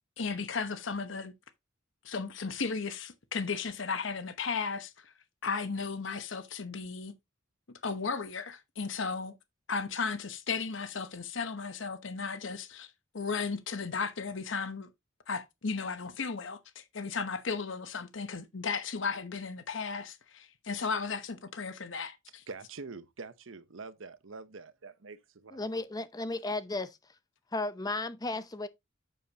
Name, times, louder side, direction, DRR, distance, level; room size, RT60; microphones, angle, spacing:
voice 1, 0.2-1.3 2.0-5.1 5.4-7.1 7.8-9.3 9.7-14.9 15.3-22.4, left 5 dB, 65° left, 0.9 m, -35 dB
voice 2, 22.5-25.9, right 4 dB, 80° right, 0.9 m, -46 dB
voice 3, 25.5-27.0 27.5-28.7, left 2 dB, 20° left, 0.7 m, -34 dB
7.6 x 6.8 x 2.9 m
head